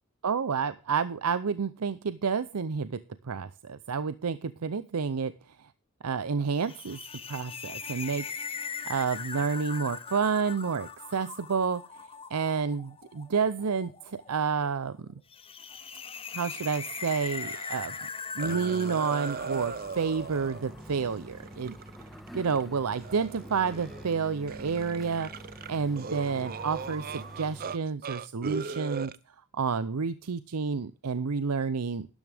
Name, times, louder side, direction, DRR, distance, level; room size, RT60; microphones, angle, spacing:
voice 1, 0.2-3.0 3.2-5.3 6.0-7.0 7.3-8.2 8.8-11.8 12.3-15.1 16.3-17.9 18.4-21.7 22.3-25.3 25.7-29.1 29.5-32.1, right 5 dB, 90° right, 14 dB, 0.6 m, -29 dB
sound 1, 6.6-20.9, left 6 dB, 25° left, 0.8 m, -40 dB
sound 2, 17.3-18.1 18.4-22.6 22.9-24.2 24.5-27.8 28.0-29.2, right 5 dB, 40° right, 0.6 m, -39 dB
sound 3, 19.2-27.8, equal, ahead, 1.4 m, -46 dB
12.5 x 10.5 x 3.5 m, 0.33 s
head